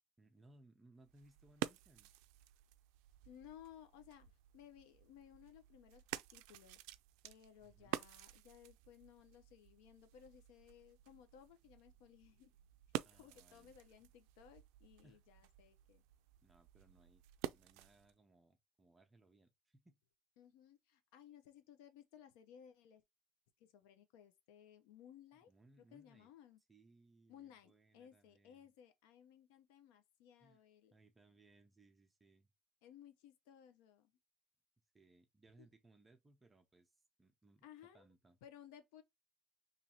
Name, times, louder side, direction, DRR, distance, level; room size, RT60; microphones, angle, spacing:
voice 1, 0.2-2.1 7.6-8.0 13.0-13.7 14.0-14.1 15.0-15.2 16.4-20.0 25.5-26.3 26.7-28.7 30.4-30.6 30.9-32.5 34.9-37.7 37.9-38.4, right 2 dB, 10° right, 0.5 m, -67 dB
sound 1, 1.0-18.2, right 15 dB, 85° right, 0.3 m, -50 dB
voice 2, 3.3-6.8 7.2-12.5 13.1-16.0 20.4-23.0 23.6-25.5 25.8-26.6 27.3-30.9 32.8-34.1 35.6-35.7 37.6-38.1 38.4-39.0, left 10 dB, 90° left, 0.6 m, -60 dB
3.0 x 2.7 x 4.2 m
cardioid pair, 175°, 0 cm